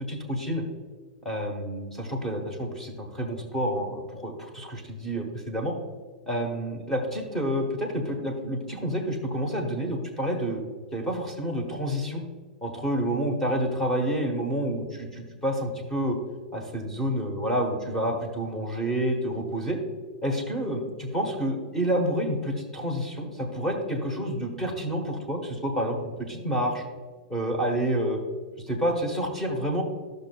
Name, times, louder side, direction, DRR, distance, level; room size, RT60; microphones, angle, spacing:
voice 1, 0.1-0.6 1.2-5.7 6.3-10.6 10.9-12.2 12.6-16.2 16.5-19.8 20.2-26.8 27.3-28.2 28.7-29.8, equal, 5° left, 2 dB, 1.2 m, -29 dB
13.0 x 6.5 x 2.3 m, 1.5 s
supercardioid pair, 165°, 5 cm